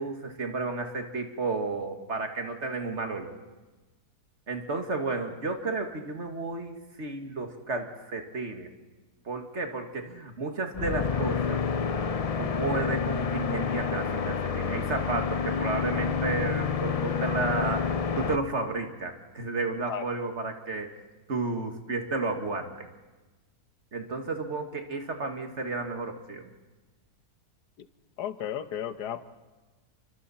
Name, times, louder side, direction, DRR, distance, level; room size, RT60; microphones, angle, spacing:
voice 1, 0.0-3.4 4.5-8.7 9.3-11.6 12.4-20.9 21.3-22.9 23.9-26.5, right 3 dB, 45° right, 5 dB, 2.0 m, -32 dB
sound 1, 10.7-18.4, left 6 dB, 60° left, 0.3 m, -29 dB
voice 2, 28.2-29.2, left 9 dB, 90° left, 11 dB, 1.5 m, -33 dB
29.0 x 23.5 x 4.2 m, 1.2 s
omnidirectional pair, 1.7 m